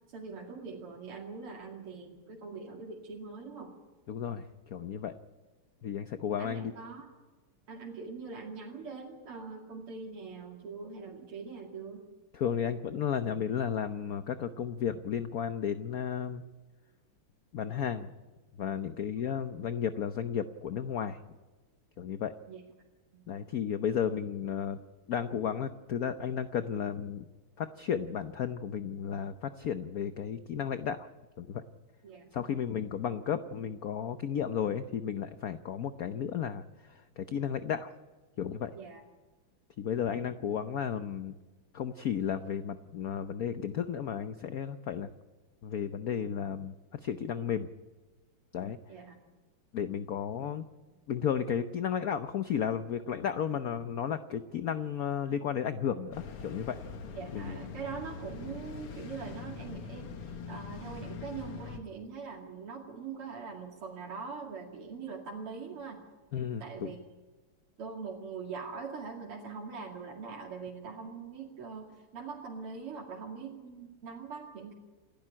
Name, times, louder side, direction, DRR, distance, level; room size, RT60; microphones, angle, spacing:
voice 1, 0.1-3.7 6.4-7.1 7.7-12.0 22.5-22.6 23.1-23.6 32.0-32.3 38.7-39.0 48.9-49.2 57.1-66.0 66.6-67.0 67.8-74.7, right 5 dB, 80° right, -2 dB, 3.4 m, -42 dB
voice 2, 4.1-5.1 5.8-6.7 12.3-16.4 17.5-18.1 18.6-21.2 22.0-22.3 23.3-24.8 25.1-27.3 27.6-31.1 31.4-31.6 32.3-36.6 36.9-37.9 38.4-38.7 39.8-41.3 41.7-45.1 45.6-47.7 48.5-48.8 49.7-50.6 51.1-56.8 57.3-57.6 66.3-66.9, left 8 dB, 60° left, 10 dB, 1.0 m, -33 dB
sound 1, 56.1-61.8, left 5 dB, 85° left, 2.6 m, -43 dB
28.5 x 12.5 x 9.9 m, 1.3 s
omnidirectional pair, 2.4 m